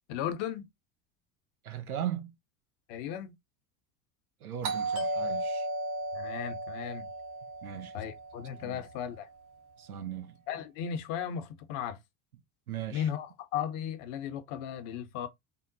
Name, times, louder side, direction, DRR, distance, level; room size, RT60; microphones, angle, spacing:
voice 1, 0.1-0.6 2.9-3.3 6.1-7.1 7.9-9.3 10.5-12.0 12.9-15.3, left 9 dB, 60° left, 0.8 m, -36 dB
voice 2, 1.6-2.3 4.4-5.7 7.6-8.1 8.6-8.8 9.8-10.4 12.7-13.1, right 10 dB, 85° right, 0.7 m, -38 dB
Doorbell, 4.6-9.2, right 2 dB, 65° right, 2.2 m, -35 dB
3.7 x 2.1 x 3.7 m
hypercardioid pair, 75°, 43 cm